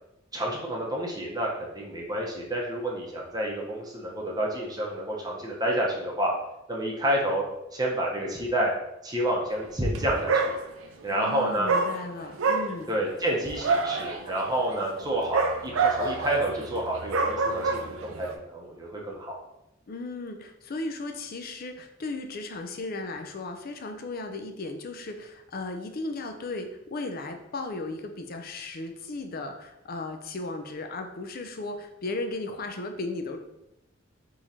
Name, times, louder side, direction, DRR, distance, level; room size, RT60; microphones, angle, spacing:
voice 1, 0.3-6.3 6.7-7.4 7.7-8.7 9.0-10.5 11.0-11.7 12.9-19.3, right 1 dB, 20° right, -2 dB, 0.8 m, -29 dB
Dog, 9.8-10.0 10.3-11.0 11.7-18.3, right 4 dB, 90° right, 0.5 m, -28 dB
voice 2, 11.1-12.9 19.9-33.4, left 2 dB, 50° left, 6 dB, 0.5 m, -36 dB
3.7 x 3.0 x 4.2 m, 0.86 s
head